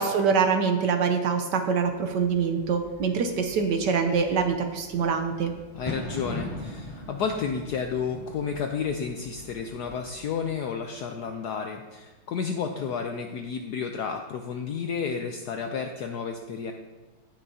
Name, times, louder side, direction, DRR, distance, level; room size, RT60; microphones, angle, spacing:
voice 1, 0.0-5.5, right 5 dB, 70° right, 6 dB, 1.1 m, -24 dB
Bird / Fireworks, 1.8-11.0, left 1 dB, 20° left, 2.2 m, -42 dB
voice 2, 5.7-16.7, left 6 dB, 75° left, 4 dB, 0.9 m, -31 dB
16.5 x 5.9 x 2.7 m, 1.3 s
omnidirectional pair, 2.3 m